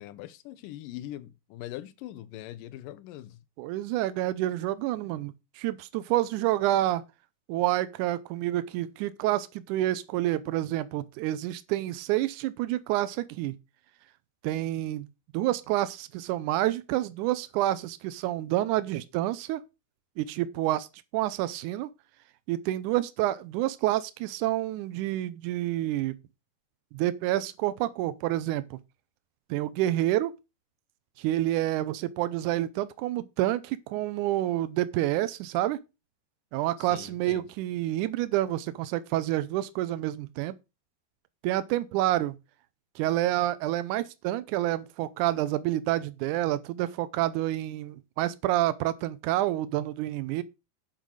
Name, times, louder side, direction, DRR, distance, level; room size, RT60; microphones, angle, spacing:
voice 1, 0.0-3.4 36.8-37.5, left 14 dB, 80° left, 2.0 m, -42 dB
voice 2, 3.6-7.0 7.5-13.5 14.4-15.1 15.3-19.6 20.2-20.9 21.1-21.9 22.5-26.1 26.9-28.8 29.5-30.3 31.2-35.8 36.5-40.5 41.4-42.3 43.0-50.4, right 14 dB, 85° right, 1.7 m, -28 dB
9.3 x 5.1 x 6.3 m
omnidirectional pair, 4.3 m